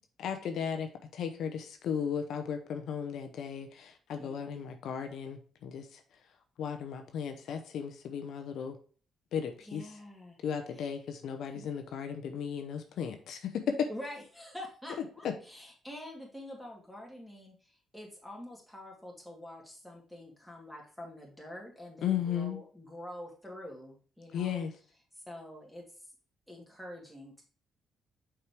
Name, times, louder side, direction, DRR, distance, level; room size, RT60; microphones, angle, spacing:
voice 1, 0.2-6.0 6.6-8.8 9.3-9.9 10.4-13.9 15.0-15.3 22.0-22.6 24.3-24.7, left 7 dB, 75° left, 7 dB, 0.7 m, -35 dB
voice 2, 4.2-4.7 9.7-10.4 10.7-10.9 11.5-11.7 13.9-24.6 25.3-25.8 26.5-27.4, left 1 dB, ahead, -2 dB, 2.4 m, -46 dB
5.7 x 4.8 x 3.4 m, 0.41 s
cardioid pair, 90°, 0 cm